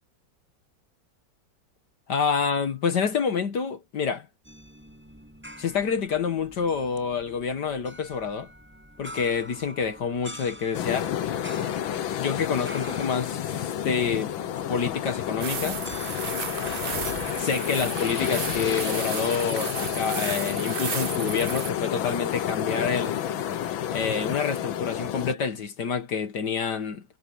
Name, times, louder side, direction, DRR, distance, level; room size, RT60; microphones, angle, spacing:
voice 1, 2.1-4.3 5.6-8.5 9.0-11.1 12.2-14.3 14.7-15.8 17.4-23.2 23.9-27.0, left 6 dB, 60° left, 1.8 m, -28 dB
sound 1, 4.4-18.7, equal, 5° right, 6.5 m, -46 dB
sound 2, 10.7-25.3, left 10 dB, 80° left, 1.8 m, -30 dB
sound 3, 15.4-21.7, right 7 dB, 60° right, 0.5 m, -34 dB
omnidirectional pair, 2.1 m